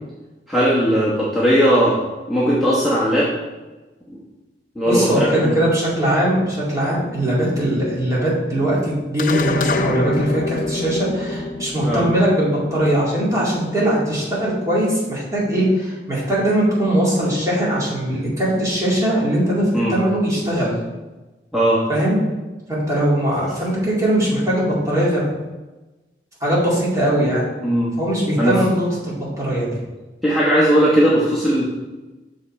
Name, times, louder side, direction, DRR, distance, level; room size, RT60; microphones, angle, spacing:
voice 1, 0.5-2.0 2.3-3.3 4.1-4.2 4.7-5.5 11.8-12.0 19.7-19.9 21.5-21.8 27.6-27.9 28.4-28.6 30.2-31.6, equal, ahead, -9 dB, 1.1 m, -17 dB
voice 2, 4.9-20.7 21.9-22.2 22.7-25.3 26.4-27.4 28.0-29.8, right 1 dB, 20° right, -7 dB, 2.3 m, -20 dB
sound 1, 9.2-13.8, left 3 dB, 50° left, 0.5 m, -27 dB
6.5 x 5.2 x 4.3 m, 1.1 s
head